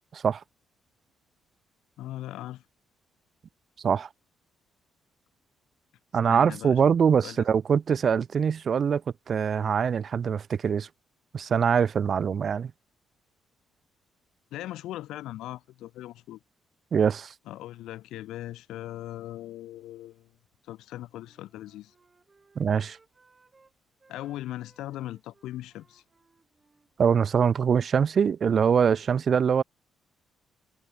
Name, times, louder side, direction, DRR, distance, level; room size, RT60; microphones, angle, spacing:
voice 1, 2.0-2.6 6.3-6.8 7.2-7.4 14.5-16.4 17.5-20.3 20.7-21.9 24.1-26.0, left 14 dB, 85° left, 0.6 m, -39 dB
voice 2, 6.1-9.0 9.3-10.9 11.3-12.7 16.9-17.3 22.6-23.0 27.0-29.6, right 7 dB, 50° right, 0.3 m, -23 dB
Wind instrument woodwind instrument, 21.0-23.7 24.0-27.6, right 4 dB, 25° right, 6.0 m, -64 dB
cardioid pair, 90°, 0 cm